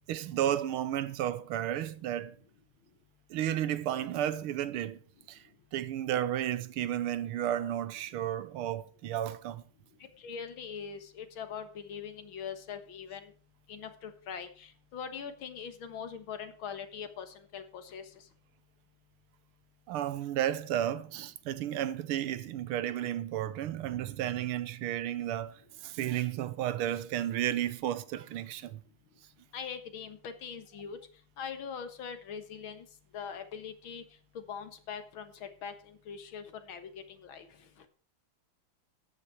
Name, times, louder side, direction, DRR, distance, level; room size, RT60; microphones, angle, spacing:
voice 1, 0.1-2.4 3.3-5.0 5.3-5.4 5.7-9.6 19.9-28.8, right 11 dB, 85° right, 1.7 m, -33 dB
voice 2, 10.2-13.3 13.7-18.0 29.5-31.0 31.4-32.9 33.1-34.0 34.5-35.7 36.1-36.9 37.2-37.5, left 7 dB, 70° left, 2.2 m, -42 dB
13.0 x 9.8 x 4.7 m
omnidirectional pair, 2.4 m